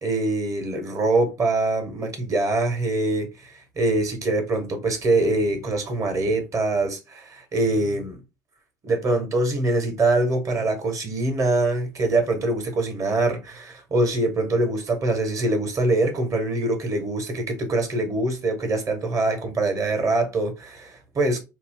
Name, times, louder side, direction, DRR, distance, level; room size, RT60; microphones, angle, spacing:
voice 1, 0.0-8.2 8.8-21.4, right 2 dB, 35° right, 1.1 m, -24 dB
2.6 x 2.0 x 3.6 m
hypercardioid pair, 70°, 9 cm